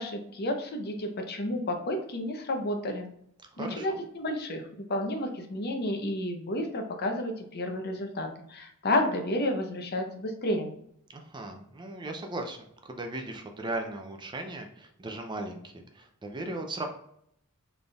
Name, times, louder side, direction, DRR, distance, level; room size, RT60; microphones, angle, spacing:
voice 1, 0.0-3.1 3.6-10.7, left 1 dB, 50° left, 4 dB, 0.7 m, -31 dB
voice 2, 3.5-4.0 11.1-16.9, right 2 dB, 20° right, 4 dB, 0.5 m, -37 dB
4.2 x 3.4 x 2.3 m, 0.72 s
head